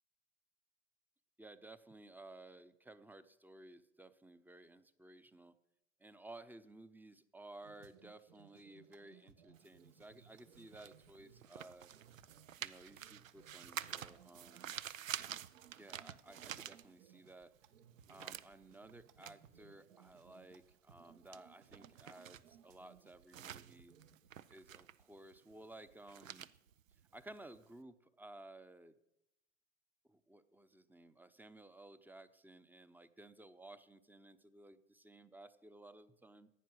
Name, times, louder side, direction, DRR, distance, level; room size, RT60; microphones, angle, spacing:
voice 1, 1.4-5.5 6.0-11.9 12.6-14.7 15.7-17.5 18.1-23.9 24.5-26.5 27.1-29.0 30.0-36.5, right 2 dB, 5° right, 13 dB, 0.7 m, -56 dB
sound 1, 7.6-24.3, right 8 dB, 70° right, 1.2 m, -65 dB
sound 2, 9.6-17.3 17.6-27.7, right 10 dB, 85° right, 0.6 m, -49 dB
14.5 x 9.5 x 6.3 m, 0.89 s
hypercardioid pair, 85°, 38 cm